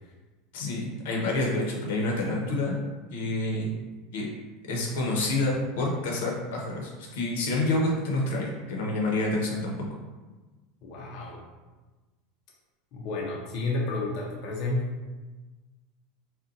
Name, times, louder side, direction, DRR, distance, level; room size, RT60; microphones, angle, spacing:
voice 1, 0.5-2.8 3.1-3.7 4.1-4.3 4.7-10.0, left 2 dB, 85° left, -1 dB, 0.7 m, -28 dB
voice 2, 10.8-11.4 12.9-14.9, left 2 dB, 40° left, -3 dB, 0.5 m, -31 dB
2.6 x 2.2 x 3.8 m, 1.2 s
supercardioid pair, 170°, 0 cm